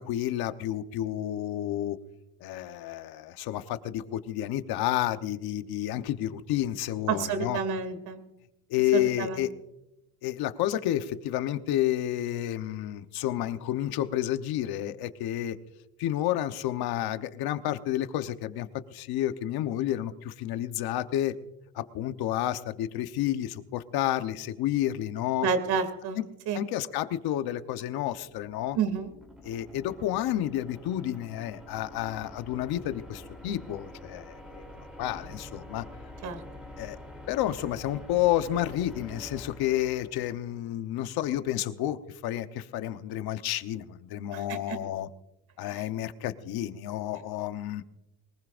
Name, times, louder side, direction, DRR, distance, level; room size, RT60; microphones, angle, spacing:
voice 1, 0.0-2.0 2.4-7.6 8.7-9.5 10.2-15.6 16.0-21.3 21.7-25.5 26.5-28.8 29.4-35.8 36.8-37.0 37.3-45.1 45.6-47.8, left 13 dB, 60° left, 10 dB, 1.0 m, -30 dB
voice 2, 7.1-8.2 8.9-9.4 25.4-26.2 26.5-26.6 28.7-29.1 36.2-36.4 44.3-44.8, right 6 dB, 60° right, 8 dB, 2.7 m, -29 dB
sound 1, 28.0-40.7, left 1 dB, ahead, 3.3 m, -47 dB
22.5 x 20.5 x 2.6 m, 0.94 s
cardioid pair, 145°, 42 cm